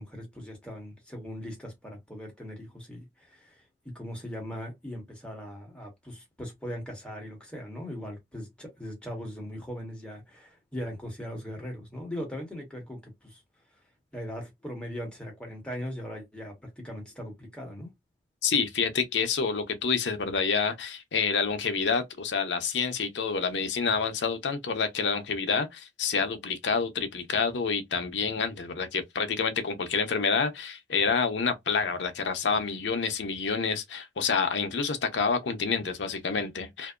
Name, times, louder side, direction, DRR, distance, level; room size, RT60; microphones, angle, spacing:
voice 1, 0.0-3.6 3.9-13.4 14.1-17.9, equal, 5° left, 1.1 m, -39 dB
voice 2, 18.4-37.0, left 5 dB, 80° left, 0.6 m, -28 dB
2.6 x 2.1 x 2.3 m
head